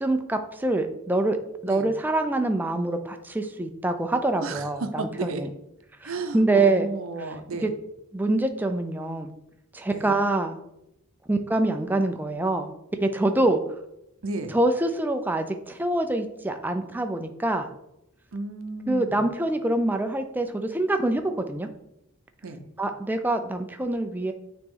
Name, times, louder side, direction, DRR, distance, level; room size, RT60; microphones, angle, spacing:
voice 1, 0.0-1.4 1.6-5.5 6.0-6.9 7.6-7.7 8.1-9.3 9.7-10.5 11.3-12.7 13.0-13.6 14.5-17.7 18.9-21.7 22.8-24.3, right 2 dB, 10° right, 6 dB, 0.4 m, -25 dB
voice 2, 4.4-5.5 6.0-7.7 9.9-10.1 14.2-14.5 18.3-19.3 22.4-22.7, right 3 dB, 70° right, 7 dB, 0.7 m, -33 dB
8.8 x 3.0 x 3.8 m, 0.84 s
head